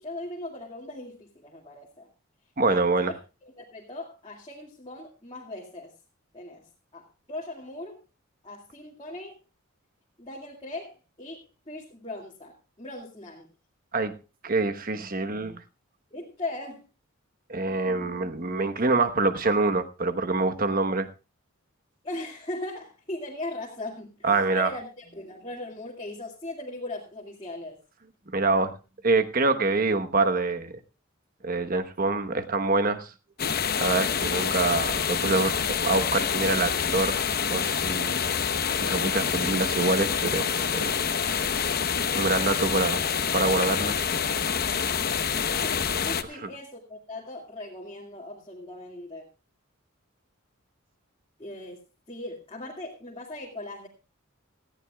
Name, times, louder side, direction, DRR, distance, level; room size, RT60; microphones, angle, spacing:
voice 1, 0.0-2.1 2.7-3.1 3.4-5.9 6.3-8.0 8.4-9.4 10.2-13.5 16.1-16.9 22.0-27.8 45.6-49.3 51.4-51.8 52.1-53.9, left 2 dB, 25° left, -3 dB, 2.3 m, -39 dB
voice 2, 2.6-3.1 13.9-14.1 14.4-15.6 17.5-21.1 24.2-24.7 28.3-28.8 29.0-30.7 31.4-33.1 33.8-37.2 37.5-38.3 38.8-40.5 40.7-40.9 42.1-43.0 43.3-44.0 46.4-46.5, right 3 dB, 40° right, 9 dB, 1.1 m, -25 dB
sound 1, 33.4-46.2, left 7 dB, 45° left, 0.9 m, -27 dB
19.0 x 14.5 x 2.3 m, 0.30 s
head